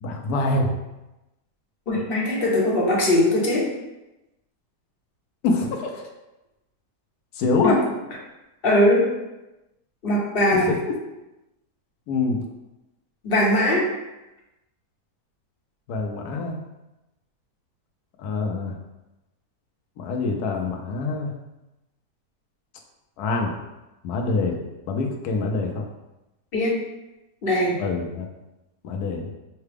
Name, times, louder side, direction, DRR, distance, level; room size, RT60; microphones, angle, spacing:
voice 1, 0.0-0.8 5.4-6.1 7.3-7.8 10.5-10.8 12.1-12.4 15.9-16.6 18.2-18.8 20.0-21.3 23.2-23.5 24.0-24.6 24.9-25.8 27.8-28.3 28.8-29.3, left 3 dB, 75° left, 2 dB, 1.2 m, -25 dB
voice 2, 1.9-3.7 7.6-7.8 8.6-9.1 10.0-10.7 13.2-13.9 26.5-26.8 27.4-27.8, left 1 dB, 40° left, -3 dB, 1.0 m, -20 dB
5.6 x 2.2 x 3.4 m, 0.98 s
omnidirectional pair, 1.7 m